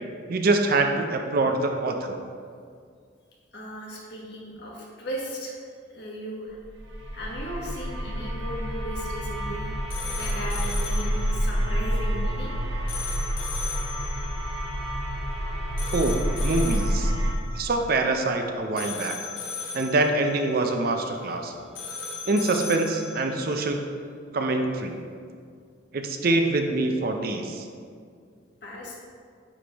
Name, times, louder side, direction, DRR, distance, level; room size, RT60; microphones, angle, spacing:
voice 1, 0.3-2.2 15.9-17.1 17.5-19.2 19.7-21.5 22.3-23.8 24.3-25.0 25.9-27.7, right 2 dB, 50° right, 4 dB, 0.5 m, -25 dB
voice 2, 3.5-5.6 5.9-6.6 7.1-9.7 10.1-12.5 28.6-28.9, equal, 60° left, -3 dB, 1.3 m, -36 dB
sound 1, 6.6-17.3, equal, 90° right, 0.7 m, -28 dB
sound 2, 9.3-23.7, left 4 dB, 85° left, 1.1 m, -39 dB
9.0 x 3.3 x 3.4 m, 2.1 s
head